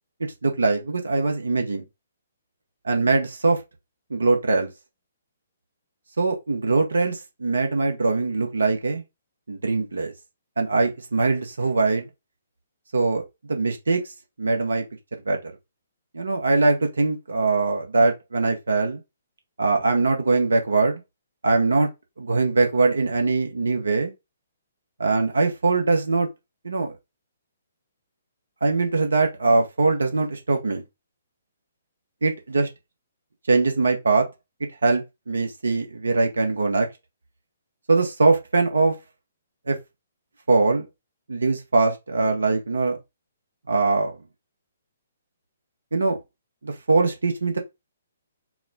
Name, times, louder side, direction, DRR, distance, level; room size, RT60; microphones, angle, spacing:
voice 1, 0.2-1.8 2.8-3.6 4.1-4.7 6.2-9.0 9.5-10.1 10.6-12.1 12.9-14.0 14.4-14.8 15.3-15.5 16.1-19.0 19.6-21.0 21.4-21.9 22.2-24.1 25.0-26.3 26.6-26.9 28.6-30.8 32.2-32.7 33.5-34.3 34.8-36.9 37.9-38.9 39.7-39.8 40.5-40.9 41.3-43.0 43.7-44.1 45.9-46.2 46.6-47.6, right 3 dB, 75° right, 0.9 m, -22 dB
4.7 x 2.2 x 3.5 m
figure-of-eight pair, 130°, 0 cm